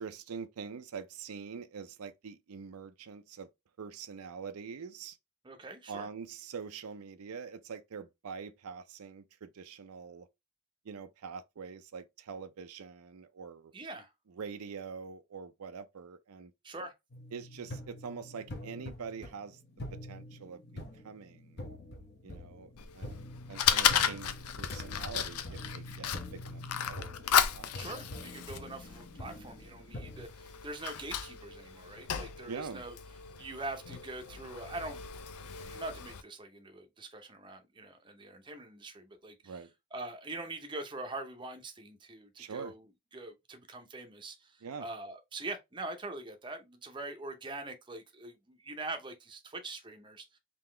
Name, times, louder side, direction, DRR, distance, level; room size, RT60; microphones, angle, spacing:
voice 1, 0.0-3.5 3.8-5.2 5.9-10.3 10.9-13.7 14.3-16.5 17.3-19.6 20.1-20.6 21.0-21.7 22.2-22.7 23.0-23.2 23.5-27.1 27.5-27.7 32.5-32.8 39.4-39.7 42.4-42.7 44.6-44.9, right 6 dB, 80° right, 0.5 m, -44 dB
voice 2, 5.4-6.1 13.7-14.1 16.6-16.9 27.7-32.9 33.4-35.0 35.6-39.5 39.9-42.8 43.1-44.5 44.8-50.3, right 2 dB, 20° right, 0.6 m, -43 dB
sound 1, 17.1-30.3, left 1 dB, 50° left, 0.9 m, -45 dB
Fire, 22.8-36.2, left 8 dB, 90° left, 0.5 m, -34 dB
3.8 x 2.8 x 3.2 m
head